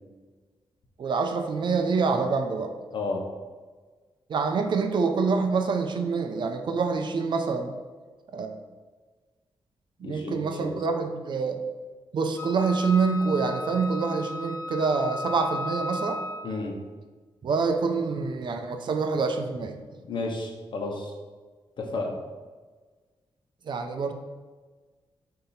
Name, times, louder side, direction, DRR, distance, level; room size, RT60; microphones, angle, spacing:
voice 1, 1.0-2.7 4.3-7.7 8.3-8.5 10.0-11.6 12.1-16.2 17.4-19.8 23.6-24.1, right 4 dB, 55° right, 6 dB, 0.6 m, -26 dB
voice 2, 2.9-3.2 10.0-10.8 16.4-16.7 20.1-21.1 21.8-22.2, left 3 dB, 60° left, 1 dB, 1.1 m, -32 dB
Wind instrument woodwind instrument, 12.4-16.6, left 2 dB, 15° left, 0.9 m, -35 dB
6.9 x 2.9 x 5.7 m, 1.4 s
wide cardioid pair, 145°, 9 cm